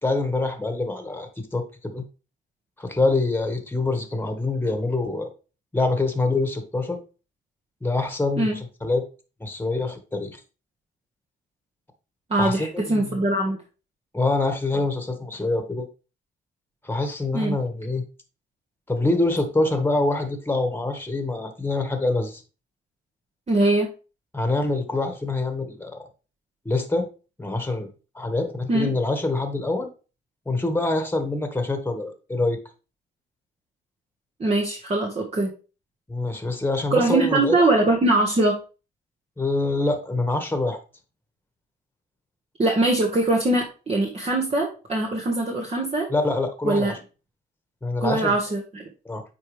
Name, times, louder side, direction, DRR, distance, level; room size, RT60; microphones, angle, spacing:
voice 1, 0.0-2.0 2.8-5.3 5.7-7.0 7.8-9.1 9.4-10.4 12.4-13.2 14.1-15.9 16.8-18.0 18.9-22.4 24.3-26.1 26.6-27.1 27.4-27.9 28.1-29.9 30.4-32.6 36.1-37.6 39.4-40.8 46.1-47.0 47.8-48.3 49.0-49.2, left 2 dB, 10° left, 6 dB, 1.6 m, -25 dB
voice 2, 12.3-13.6 17.3-17.5 23.5-23.9 28.7-28.9 34.4-35.5 36.9-38.6 42.6-46.1 46.6-46.9 48.0-48.8, right 2 dB, 30° right, -1 dB, 1.5 m, -22 dB
8.5 x 4.7 x 3.3 m, 0.33 s
cardioid pair, 90°, 20 cm